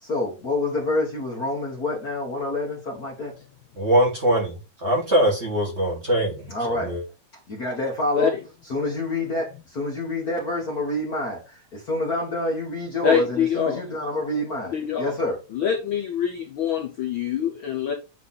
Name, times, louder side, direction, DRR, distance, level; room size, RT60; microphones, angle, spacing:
voice 1, 0.0-3.3 6.5-6.9 7.5-8.3 8.7-15.4, left 2 dB, 40° left, 1.5 m, -27 dB
voice 2, 3.8-4.5 4.8-6.4 6.7-7.0, equal, 25° right, 1.8 m, -22 dB
voice 3, 13.0-13.8 14.7-15.1 15.5-17.9, left 8 dB, 80° left, 1.1 m, -25 dB
9.3 x 3.4 x 4.1 m
omnidirectional pair, 3.3 m